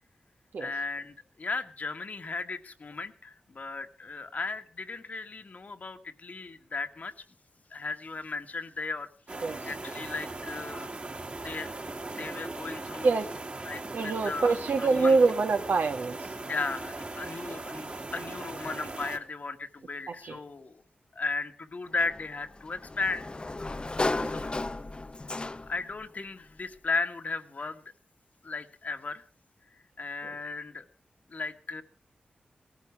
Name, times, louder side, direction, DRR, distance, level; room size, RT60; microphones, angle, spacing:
voice 1, 0.6-7.1 7.7-10.9 11.4-11.7 12.2-13.2 13.6-15.2 16.5-20.8 21.1-23.3 24.2-24.8 25.7-27.8 28.4-29.2 30.0-30.8 31.3-31.8, left 4 dB, 55° left, 7 dB, 1.6 m, -36 dB
sound 1, 9.3-19.2, right 2 dB, 40° right, 2.5 m, -39 dB
voice 2, 13.9-16.2 20.2-20.4 24.2-24.3, right 4 dB, 80° right, 6 dB, 1.7 m, -25 dB
Sliding door, 22.0-25.9, left 2 dB, 30° left, 0.7 m, -34 dB
18.0 x 14.0 x 4.7 m, 0.36 s
cardioid pair, 60°, 3 cm